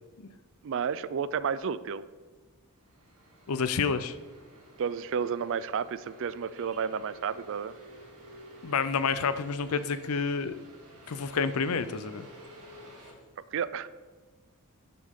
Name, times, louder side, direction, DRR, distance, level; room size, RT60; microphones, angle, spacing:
voice 1, 0.6-2.0 4.8-7.7 13.5-13.9, right 7 dB, 60° right, 16 dB, 0.4 m, -31 dB
sound 1, 2.8-13.1, equal, 85° right, 2.5 m, -51 dB
voice 2, 3.5-4.2 8.6-10.5 11.1-12.3, left 5 dB, 75° left, 13 dB, 0.5 m, -29 dB
11.5 x 6.8 x 3.7 m, 1.4 s
head